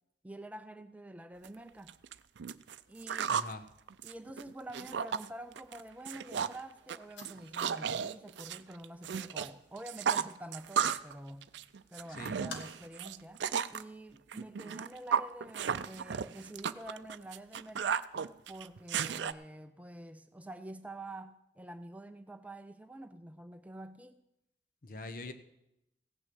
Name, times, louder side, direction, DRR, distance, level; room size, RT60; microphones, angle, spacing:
voice 1, 0.2-2.0 2.9-3.4 4.0-11.5 11.9-13.4 13.7-18.1 18.5-24.2, right 1 dB, 10° right, 8 dB, 0.4 m, -47 dB
sound 1, 1.4-1.5 1.9-3.5 3.9-5.3 5.6-5.8 6.1-6.6 6.9-9.5 9.8-11.1 11.4-13.8 14.3-19.3, right 7 dB, 80° right, 0.5 m, -34 dB
voice 2, 3.3-3.6 12.1-12.4 24.8-25.3, left 2 dB, 50° left, 9 dB, 1.0 m, -43 dB
sound 2, 4.8-13.1, left 4 dB, 90° left, 1.3 m, -56 dB
16.0 x 6.2 x 7.8 m, 0.85 s
head